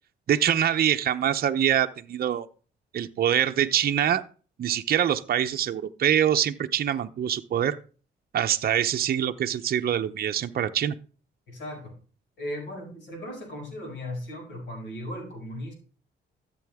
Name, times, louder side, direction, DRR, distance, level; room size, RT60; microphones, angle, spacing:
voice 1, 0.3-2.5 2.9-4.2 4.6-7.8 8.3-11.0, right 10 dB, 50° right, 7 dB, 0.7 m, -24 dB
voice 2, 11.5-11.9 12.4-15.7, left 1 dB, 65° left, 1 dB, 6.6 m, -37 dB
14.0 x 7.7 x 3.6 m, 0.38 s
cardioid pair, 90°, 20 cm